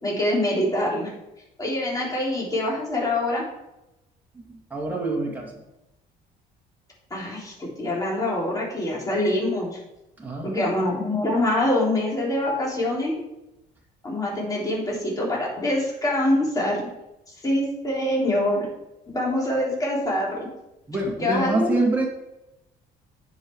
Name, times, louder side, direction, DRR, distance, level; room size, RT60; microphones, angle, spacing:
voice 1, 0.0-1.1 1.6-3.4 7.1-9.8 10.4-13.2 14.0-16.8 17.4-18.7 19.1-20.5 21.2-21.7, left 1 dB, 20° left, -4 dB, 3.5 m, -25 dB
voice 2, 4.3-5.6 10.2-10.8 20.9-22.1, right 2 dB, 10° right, -2 dB, 2.1 m, -26 dB
9.7 x 5.5 x 4.7 m, 0.90 s
cardioid pair, 110°, 17 cm